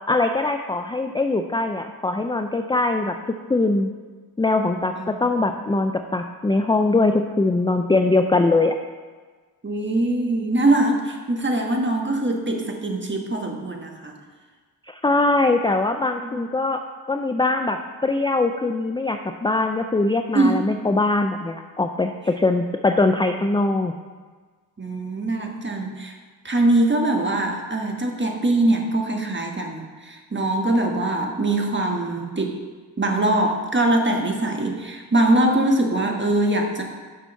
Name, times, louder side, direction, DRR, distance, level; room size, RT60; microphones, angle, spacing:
voice 1, 0.1-3.1 3.5-3.9 4.4-8.8 14.9-16.8 17.1-23.9, left 2 dB, 15° left, 6 dB, 0.3 m, -22 dB
voice 2, 9.6-14.1 16.2-16.4 20.3-20.7 24.8-26.1 26.4-32.5 33.0-36.8, right 2 dB, 30° right, 2 dB, 1.3 m, -22 dB
7.0 x 6.1 x 5.5 m, 1.4 s
wide cardioid pair, 95°, 40 cm